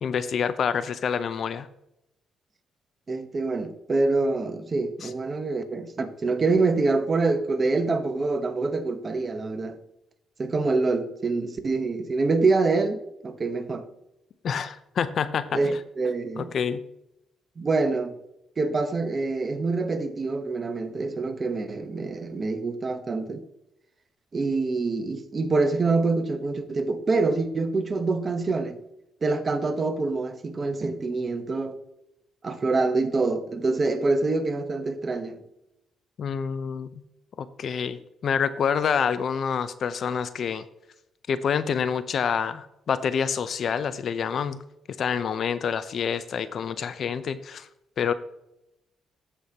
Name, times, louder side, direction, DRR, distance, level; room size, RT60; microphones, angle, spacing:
voice 1, 0.0-1.7 5.0-5.1 14.4-15.6 16.4-16.8 36.2-37.0 37.4-40.7 41.3-44.6 45.0-47.7 48.0-48.1, left 7 dB, 55° left, 0.5 m, -27 dB
voice 2, 3.1-9.8 10.4-13.8 15.5-16.5 17.6-18.2 18.6-23.4 24.3-28.8 29.2-31.8 32.4-35.4, right 3 dB, 35° right, 0.9 m, -26 dB
14.5 x 5.0 x 2.8 m
cardioid pair, 90°, 0 cm